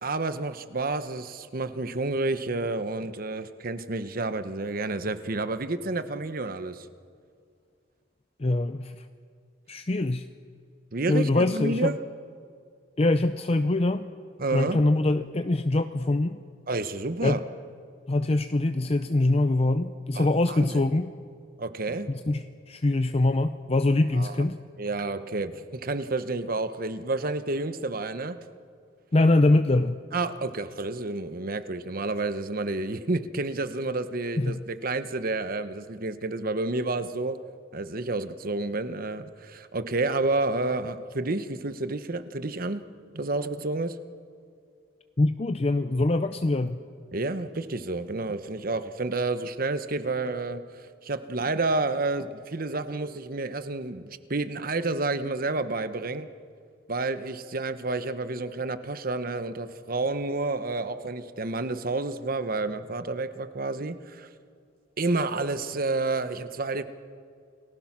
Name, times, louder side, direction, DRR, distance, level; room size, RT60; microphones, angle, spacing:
voice 1, 0.0-6.9 10.9-12.0 14.4-14.9 16.7-17.4 20.1-20.9 21.6-22.1 24.1-24.4 24.8-28.4 30.1-37.4 37.7-42.8 43.1-44.0 47.1-56.3 56.9-64.3 65.0-66.8, right 2 dB, 50° right, 11 dB, 1.0 m, -30 dB
voice 2, 8.4-8.9 9.7-10.2 11.1-11.9 13.0-14.1 14.5-16.4 17.2-17.4 18.1-21.1 22.1-22.4 22.7-24.6 29.1-30.0 34.4-34.6 45.2-46.8, left 2 dB, 35° left, 9 dB, 0.6 m, -23 dB
29.5 x 19.5 x 6.1 m, 2.2 s
head